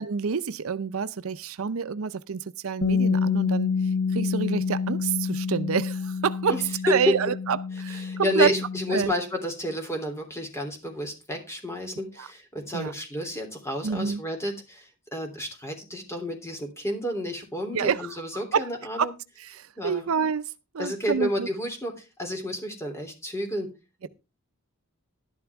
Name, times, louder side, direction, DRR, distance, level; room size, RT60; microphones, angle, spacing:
voice 1, 0.0-3.7 4.1-6.6 6.8-8.5 8.9-9.1 12.2-12.3 12.7-12.9 13.8-14.2 17.7-18.1 18.5-18.7 19.0-19.1 19.4-21.5, right 6 dB, 70° right, 0.6 m, -28 dB
Bass guitar, 2.8-9.1, left 5 dB, 75° left, 0.5 m, -28 dB
voice 2, 7.9-19.1 19.8-20.0 20.8-23.7, equal, 15° left, 3.1 m, -31 dB
12.0 x 11.5 x 3.5 m
head